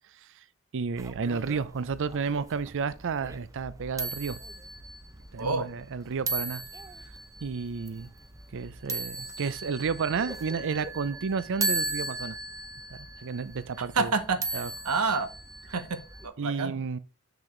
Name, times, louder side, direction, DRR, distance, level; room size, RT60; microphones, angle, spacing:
voice 1, 0.7-4.4 5.3-6.6 7.4-8.1 8.5-12.4 12.9-14.1 14.5-14.7 16.4-17.0, right 5 dB, 60° right, 0.5 m, -32 dB
sound 1, 1.0-16.3, right 2 dB, 15° right, 0.6 m, -38 dB
voice 2, 13.9-15.3 15.7-16.0 16.2-16.8, right 4 dB, 85° right, 1.0 m, -28 dB
6.9 x 6.1 x 3.2 m
head